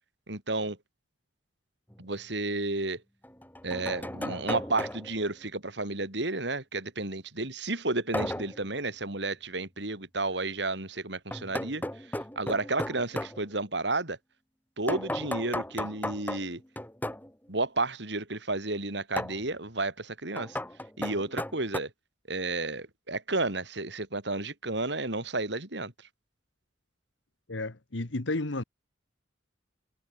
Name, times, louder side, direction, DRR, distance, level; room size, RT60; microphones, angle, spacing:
voice 1, 0.3-0.8 2.0-3.0 3.6-11.8 12.4-14.2 14.8-16.6 17.5-20.6 21.0-21.9 22.3-25.9, right 2 dB, 65° right, 4.1 m, -32 dB
sound 1, 1.9-2.0 3.2-5.2 8.1-8.6 11.3-13.4 14.9-17.3 19.2-19.4 20.4-21.8, left 1 dB, 10° left, 6.2 m, -35 dB
voice 2, 27.5-28.6, left 2 dB, 80° left, 1.6 m, -32 dB
head